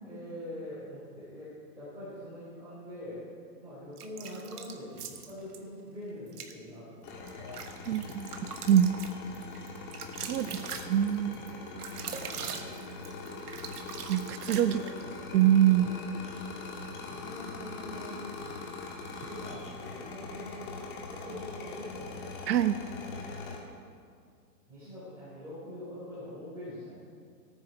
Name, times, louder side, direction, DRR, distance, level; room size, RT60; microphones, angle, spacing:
voice 1, 0.0-3.2 3.6-7.6 7.9-8.2 8.7-9.0 10.3-10.8 11.2-13.4 14.7-15.2 15.7-16.0 17.1-18.3 19.2-20.8 21.1-22.3 23.1-23.5 24.7-27.0, left 1 dB, 5° right, -13 dB, 3.9 m, -44 dB
sound 1, 4.0-5.6 6.3-6.5 7.1-15.1, right 7 dB, 65° right, 1.5 m, -42 dB
sound 2, 7.0-23.6, left 3 dB, 30° left, 1.8 m, -42 dB
voice 2, 7.9-8.3 8.7-8.9 10.2-10.5 10.9-11.4 14.1-14.8 15.3-15.9 22.5-22.8, right 10 dB, 80° right, 12 dB, 0.8 m, -24 dB
15.0 x 9.4 x 5.9 m, 2.2 s
hypercardioid pair, 165°, 49 cm